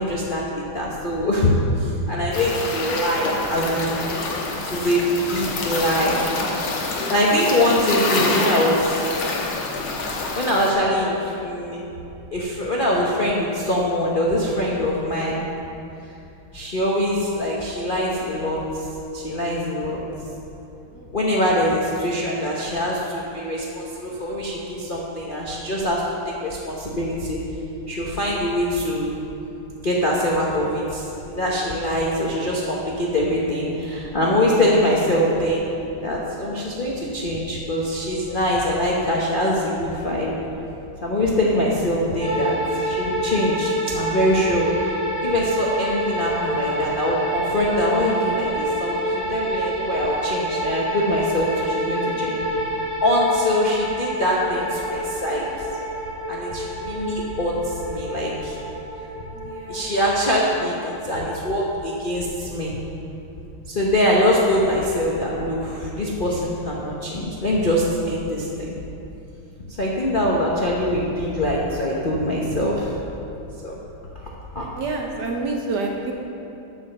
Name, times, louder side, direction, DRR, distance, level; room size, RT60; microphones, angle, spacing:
voice 1, 0.0-3.9 4.7-6.2 6.9-8.9 10.3-11.8 12.3-15.4 16.5-18.9 19.1-20.0 21.1-26.1 26.4-27.4 27.9-29.1 29.8-31.1 31.4-35.7 36.0-40.3 41.0-44.9 45.2-52.7 53.0-55.7 56.3-58.6 59.7-62.8 63.7-68.7 69.7-73.0 73.6-73.8 74.2-74.3 74.5-74.7, left 1 dB, 50° left, -4 dB, 0.6 m, -23 dB
sound 1, 2.3-10.7, left 3 dB, 70° left, 1.9 m, -27 dB
sound 2, 42.2-61.8, right 1 dB, 5° left, 1.9 m, -28 dB
voice 2, 59.3-59.9 74.7-76.1, right 3 dB, 65° right, 1 dB, 1.1 m, -28 dB
8.5 x 7.1 x 6.5 m, 2.8 s
omnidirectional pair, 2.4 m